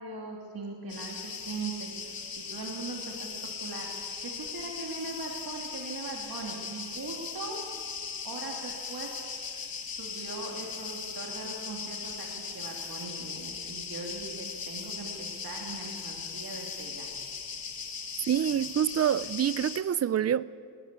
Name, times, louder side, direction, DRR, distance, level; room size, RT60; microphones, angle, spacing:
voice 1, 0.0-3.3 3.6-7.6 8.2-9.1 9.4-17.1, right 3 dB, 50° right, 2.8 m, -40 dB
sound 1, 0.9-19.8, left 6 dB, 50° left, 1.9 m, -39 dB
voice 2, 18.3-20.4, right 9 dB, 35° right, 0.5 m, -26 dB
20.5 x 19.0 x 8.1 m
wide cardioid pair, 140°, 45 cm